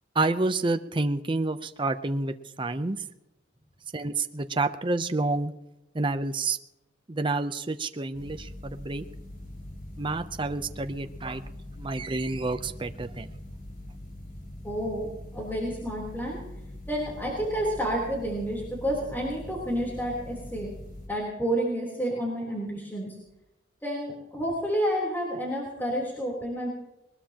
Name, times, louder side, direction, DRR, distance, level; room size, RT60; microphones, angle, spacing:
voice 1, 0.1-3.1 3.9-5.5 5.9-6.6 7.1-9.0 10.0-11.4 11.8-13.4, right 3 dB, 25° right, 9 dB, 0.6 m, -29 dB
sound 1, 8.1-21.1, left 1 dB, 45° left, 5.4 m, -42 dB
voice 2, 14.6-16.4 16.9-20.7 21.1-23.2 23.8-26.7, equal, 10° left, -3 dB, 3.4 m, -30 dB
21.0 x 20.0 x 2.9 m, 0.93 s
head